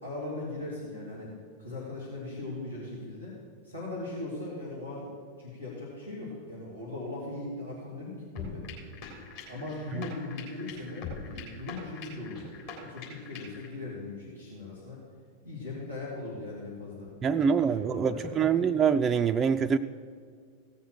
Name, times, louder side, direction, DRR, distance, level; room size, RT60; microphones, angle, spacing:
voice 1, 0.0-1.3 1.6-3.4 3.6-5.1 5.4-8.7 9.5-15.0 15.4-18.6, left 2 dB, 90° left, -8 dB, 3.0 m, -39 dB
sound 1, 8.4-13.7, left 4 dB, 55° left, 3.6 m, -43 dB
voice 2, 17.2-19.8, right 7 dB, 25° right, 6 dB, 0.3 m, -25 dB
16.5 x 6.7 x 6.3 m, 2.1 s
figure-of-eight pair, 90°, 0 cm